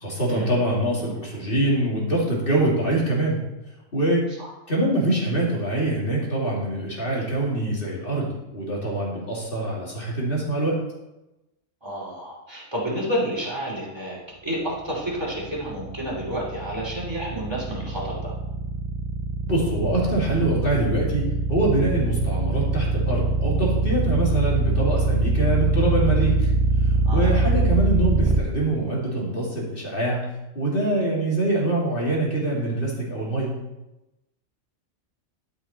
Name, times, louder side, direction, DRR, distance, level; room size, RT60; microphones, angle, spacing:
voice 1, 0.0-3.4 3.9-4.3 4.7-10.8 19.5-26.5 27.1-30.3 30.5-33.5, right 1 dB, 45° left, -4 dB, 2.7 m, -24 dB
voice 2, 11.8-18.3 27.1-27.5, equal, 20° right, -5 dB, 2.9 m, -30 dB
sound 1, 15.1-28.4, right 3 dB, 45° right, 0.3 m, -23 dB
12.0 x 5.5 x 4.2 m, 0.97 s
omnidirectional pair, 1.3 m